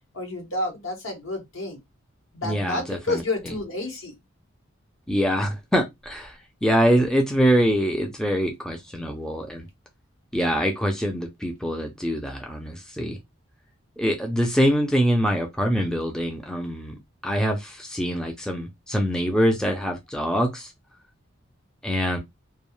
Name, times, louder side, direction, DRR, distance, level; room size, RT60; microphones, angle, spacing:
voice 1, 0.1-1.8 2.3-4.1, left 2 dB, 75° left, 1.0 m, -30 dB
voice 2, 2.4-3.2 5.1-6.3 6.6-9.7 10.3-13.2 14.0-20.7 21.8-22.2, equal, 5° left, 0.4 m, -24 dB
2.3 x 2.2 x 3.0 m
head